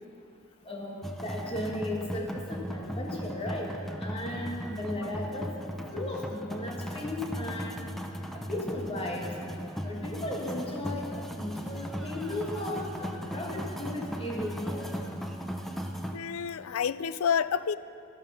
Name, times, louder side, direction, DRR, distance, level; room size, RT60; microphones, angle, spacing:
voice 1, 0.6-3.7 4.0-5.5 5.9-7.8 8.5-9.3 9.8-14.9, left 1 dB, 25° left, -1 dB, 1.6 m, -36 dB
sound 1, 1.0-16.2, equal, ahead, 0.7 m, -37 dB
voice 2, 16.1-17.8, left 7 dB, 85° left, 16 dB, 0.4 m, -29 dB
13.5 x 12.5 x 5.5 m, 2.6 s
head